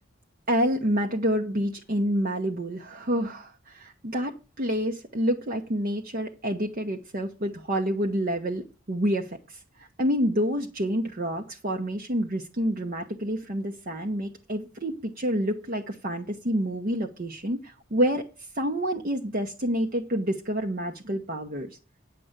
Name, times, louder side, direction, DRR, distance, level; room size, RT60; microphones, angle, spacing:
voice 1, 0.5-9.6 10.0-18.2 18.6-21.7, equal, 45° right, 2 dB, 0.9 m, -28 dB
8.9 x 6.8 x 6.6 m, 0.34 s
head